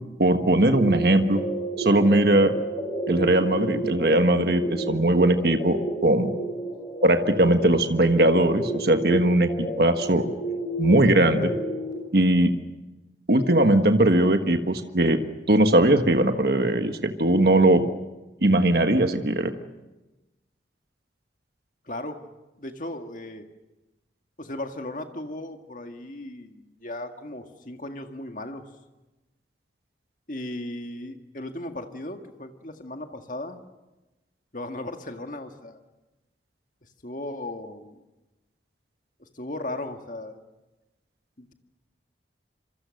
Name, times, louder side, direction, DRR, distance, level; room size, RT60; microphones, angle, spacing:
voice 1, 0.2-1.4 1.8-2.5 3.1-6.3 7.0-10.2 10.8-11.5 12.1-12.5 13.3-15.2 15.5-17.8 18.4-19.5, right 1 dB, 60° right, 7 dB, 1.5 m, -20 dB
sound 1, 0.7-11.9, right 1 dB, 25° left, 6.7 m, -31 dB
voice 2, 21.9-22.2 22.6-23.4 24.4-28.7 30.3-33.6 34.5-35.8 37.0-38.0 39.2-40.4 41.4-41.5, left 1 dB, 45° left, 5 dB, 1.9 m, -36 dB
26.5 x 24.5 x 6.5 m, 1.0 s
head